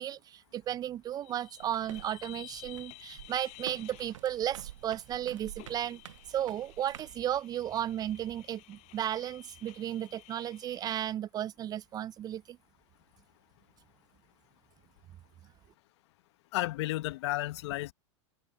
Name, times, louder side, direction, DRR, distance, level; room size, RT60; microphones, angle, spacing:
voice 1, 0.0-6.0 6.3-12.6, right 11 dB, 25° right, 0.4 m, -34 dB
sound 1, 1.2-11.1, left 22 dB, 45° left, 5.8 m, -54 dB
sound 2, 1.6-7.2, right 12 dB, 80° right, 1.0 m, -49 dB
voice 2, 16.5-17.9, left 18 dB, 65° left, 1.2 m, -32 dB
hypercardioid pair, 115°, 16 cm